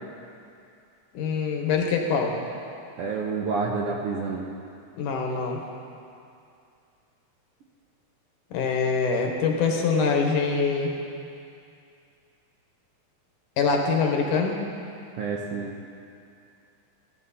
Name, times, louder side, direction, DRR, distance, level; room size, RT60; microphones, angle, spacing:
voice 1, 1.1-2.3 5.0-5.6 8.5-10.9 13.6-14.6, left 5 dB, 80° left, 2 dB, 2.8 m, -24 dB
voice 2, 3.0-4.5 15.2-15.7, right 4 dB, 70° right, -1 dB, 1.4 m, -28 dB
16.5 x 13.0 x 4.2 m, 2.5 s
omnidirectional pair, 3.6 m